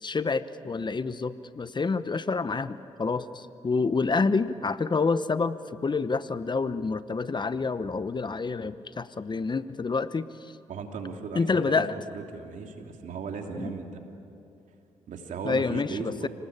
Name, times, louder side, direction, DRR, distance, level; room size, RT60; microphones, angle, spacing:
voice 1, 0.0-10.5 11.3-11.9 13.6-13.7 15.4-16.3, left 4 dB, 35° left, 13 dB, 1.0 m, -28 dB
voice 2, 10.7-14.0 15.1-16.3, right 5 dB, 75° right, 3 dB, 3.0 m, -37 dB
30.0 x 19.0 x 8.7 m, 2.8 s
supercardioid pair, 60°, 13 cm